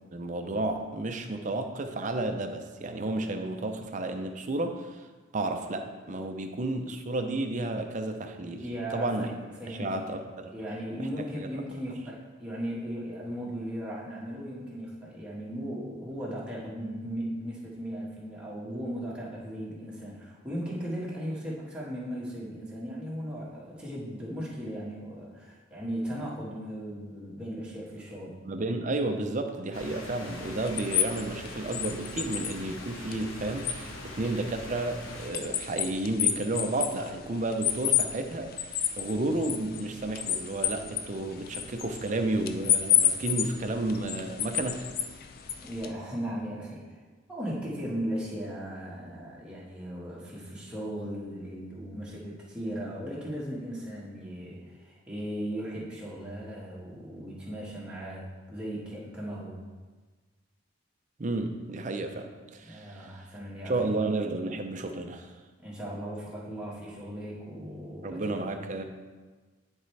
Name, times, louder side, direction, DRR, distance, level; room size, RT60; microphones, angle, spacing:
voice 1, 0.1-5.1 5.3-8.7 8.9-9.3 9.7-10.5 11.0-11.5 28.4-44.9 61.2-63.3 63.6-65.3 68.0-68.8, right 2 dB, 35° right, 5 dB, 0.5 m, -32 dB
voice 2, 8.6-9.3 9.6-10.0 10.5-28.3 45.6-47.0 47.3-59.6 62.6-63.7 65.6-68.5, equal, 5° right, -7 dB, 1.6 m, -37 dB
sound 1, 29.7-35.3, left 1 dB, 80° left, 1.2 m, -43 dB
sound 2, 30.3-45.9, left 10 dB, 45° left, 0.4 m, -32 dB
10.5 x 4.4 x 3.3 m, 1.3 s
head